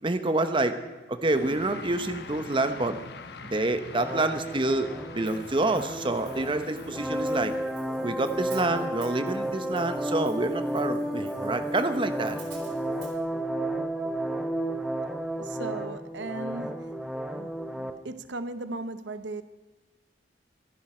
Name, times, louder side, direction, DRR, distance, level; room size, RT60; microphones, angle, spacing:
voice 1, 0.0-0.8 1.1-3.0 3.4-4.9 5.1-7.5 8.0-12.4, right 2 dB, 30° right, 9 dB, 1.0 m, -27 dB
sound 1, 1.3-7.6, left 3 dB, 65° left, 1.2 m, -44 dB
sound 2, 3.9-17.9, right 1 dB, 5° right, 0.9 m, -32 dB
Hi-hat, 5.3-13.2, right 6 dB, 65° right, 4.0 m, -53 dB
voice 2, 15.4-16.9 17.3-19.4, right 2 dB, 85° right, 12 dB, 0.8 m, -37 dB
24.0 x 11.0 x 4.4 m, 1.2 s
head